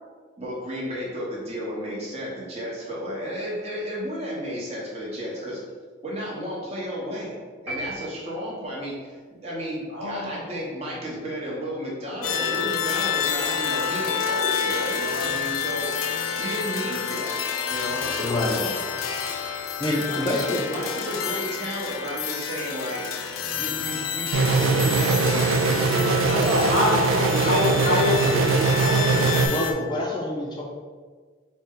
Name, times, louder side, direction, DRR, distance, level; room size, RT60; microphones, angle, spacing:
voice 1, 0.4-5.6 6.0-7.4 7.6-15.9 16.4-17.4 17.7-18.6 20.1-23.0 23.6-28.0, equal, 30° right, -5 dB, 0.9 m, -32 dB
sound 1, 7.7-8.9, right 1 dB, 10° right, 1.0 m, -36 dB
voice 2, 9.9-10.5 17.9-18.1 19.0-19.2 26.2-29.3, left 1 dB, 60° right, -6 dB, 1.3 m, -26 dB
sound 2, 12.2-29.7, left 7 dB, 85° left, 0.4 m, -29 dB
voice 3, 18.1-18.7 19.8-20.6 29.5-30.6, left 1 dB, 20° left, -2 dB, 0.3 m, -27 dB
sound 3, 24.3-29.5, right 4 dB, 90° right, 0.3 m, -22 dB
4.0 x 2.2 x 3.6 m, 1.5 s
head